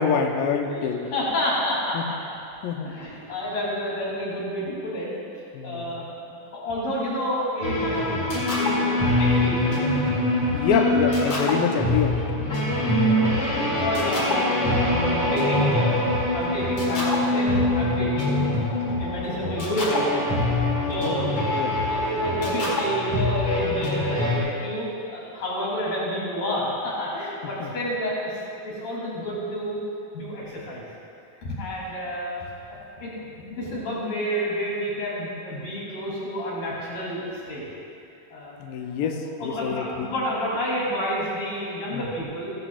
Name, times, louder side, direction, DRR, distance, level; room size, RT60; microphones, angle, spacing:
voice 1, 0.0-1.1 1.9-2.1 2.6-3.0 5.5-5.9 10.5-12.2 13.7-13.8 21.0-21.3 21.5-21.8 27.4-27.7 38.6-40.1 41.9-42.1, left 6 dB, 90° left, 4 dB, 2.0 m, -26 dB
voice 2, 0.6-2.2 2.9-5.1 5.6-6.1 6.5-8.2 8.5-10.1 10.5-10.9 12.6-12.7 13.0-16.0 16.3-18.7 19.0-20.3 20.9-21.3 21.8-24.9 25.1-29.8 30.1-30.8 31.4-32.4 32.7-33.1 33.5-37.6 38.3-38.6 39.4-42.5, equal, 60° left, -7 dB, 4.6 m, -30 dB
sound 1, 7.6-24.4, left 1 dB, 40° left, 2.9 m, -24 dB
15.5 x 12.0 x 2.4 m, 2.6 s
omnidirectional pair, 4.6 m